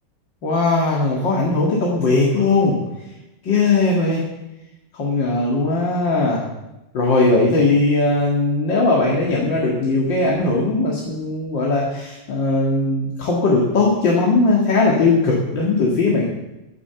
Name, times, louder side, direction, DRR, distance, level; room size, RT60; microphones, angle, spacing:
voice 1, 0.4-2.8 3.4-4.2 4.9-6.4 6.9-16.2, left 3 dB, 80° left, -3 dB, 2.8 m, -19 dB
11.5 x 11.0 x 7.0 m, 0.96 s
omnidirectional pair, 2.0 m